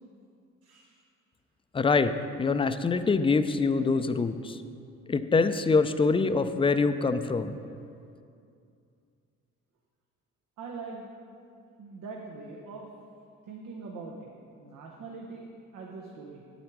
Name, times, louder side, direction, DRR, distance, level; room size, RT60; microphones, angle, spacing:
voice 1, 0.6-0.9 10.6-11.1 11.8-12.9 13.5-14.3 14.6-15.5 15.7-16.4, right 4 dB, 85° right, -1 dB, 1.0 m, -42 dB
voice 2, 1.7-4.6 5.1-7.5, left 4 dB, 20° left, 11 dB, 0.4 m, -25 dB
8.6 x 8.0 x 4.6 m, 2.5 s
cardioid pair, 90°, 30 cm